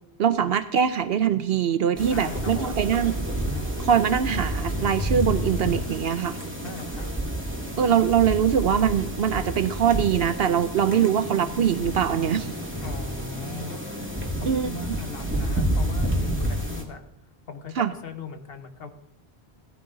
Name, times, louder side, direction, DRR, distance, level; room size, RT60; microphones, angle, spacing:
voice 1, 0.2-3.1 3.8-6.4 7.8-12.5 14.4-14.7 17.8-17.9, right 8 dB, 70° right, 11 dB, 0.9 m, -22 dB
sound 1, 2.0-16.8, right 1 dB, 10° right, 2.1 m, -30 dB
voice 2, 2.1-2.8 6.6-7.1 12.8-13.8 14.3-17.1 17.5-18.9, left 5 dB, 65° left, 7 dB, 1.4 m, -39 dB
16.0 x 14.0 x 3.9 m, 0.80 s
omnidirectional pair, 1.1 m